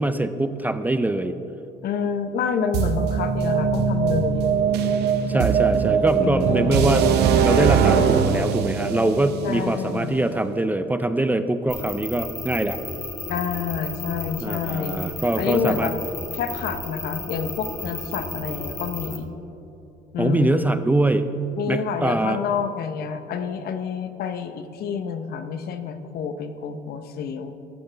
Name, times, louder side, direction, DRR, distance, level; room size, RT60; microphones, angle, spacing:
voice 1, 0.0-1.4 5.3-12.8 14.4-15.9 20.2-21.3 21.7-22.4, right 2 dB, 10° right, 10 dB, 0.5 m, -23 dB
voice 2, 1.8-4.5 6.1-7.0 9.4-10.3 13.3-15.0 15.4-15.9 16.3-19.3 20.1-20.7 21.6-27.5, left 6 dB, 70° left, 9 dB, 0.9 m, -28 dB
sound 1, 2.7-10.6, right 6 dB, 75° right, 0.9 m, -21 dB
sound 2, 11.7-19.2, left 2 dB, 15° left, 1.4 m, -33 dB
13.5 x 13.5 x 3.4 m, 3.0 s
cardioid pair, 110°, 17 cm